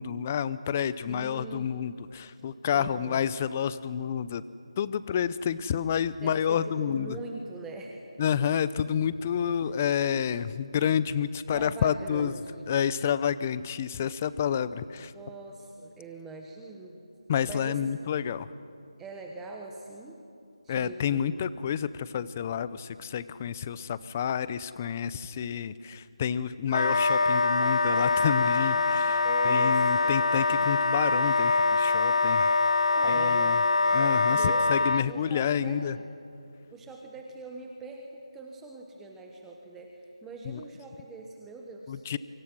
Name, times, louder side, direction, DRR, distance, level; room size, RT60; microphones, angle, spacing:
voice 1, 0.0-4.4 4.8-7.1 8.2-12.3 12.7-15.1 17.3-18.5 20.7-32.4 33.1-33.5 33.9-35.9 41.9-42.2, left 8 dB, 20° left, 16 dB, 0.6 m, -29 dB
voice 2, 1.1-1.7 2.3-2.4 2.7-3.2 6.2-8.4 9.6-9.8 11.5-12.7 14.0-14.1 15.0-17.0 17.4-17.8 19.0-20.2 20.6-21.2 29.2-30.2 32.9-33.6 34.3-36.1 36.7-42.0, right 3 dB, 5° right, 1 dB, 1.1 m, -43 dB
Wind instrument woodwind instrument, 26.7-35.0, left 3 dB, 70° left, 0.9 m, -24 dB
27.5 x 25.0 x 6.2 m, 2.6 s
figure-of-eight pair, 165°, 3 cm